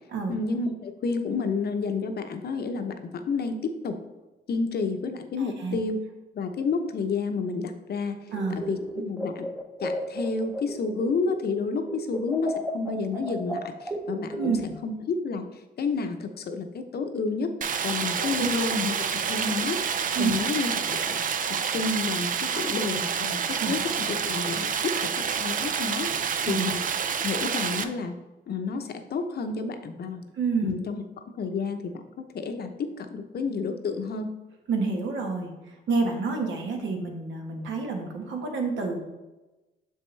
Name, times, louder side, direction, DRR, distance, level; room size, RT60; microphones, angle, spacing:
voice 1, 0.3-4.0 4.5-6.0 6.3-8.1 8.5-9.5 9.8-14.5 14.8-15.4 15.8-17.5 17.8-18.9 19.3-19.8 20.2-21.2 21.7-26.8 27.2-28.1 28.5-30.2 30.6-31.0 31.4-34.3, left 4 dB, 55° left, 7 dB, 0.8 m, -30 dB
voice 2, 5.4-5.8 8.3-8.6 14.3-14.6 18.2-18.6 20.1-20.3 23.6-23.8 26.4-26.7 30.4-30.7 34.7-35.5 35.9-39.0, right 4 dB, 70° right, 2 dB, 1.3 m, -28 dB
sound 1, 8.3-11.6 11.8-14.9, equal, 5° right, 0.8 m, -34 dB
Stream, 17.6-27.8, right 7 dB, 45° right, 0.5 m, -28 dB
6.6 x 5.4 x 3.2 m, 1.1 s
cardioid pair, 90°, 20 cm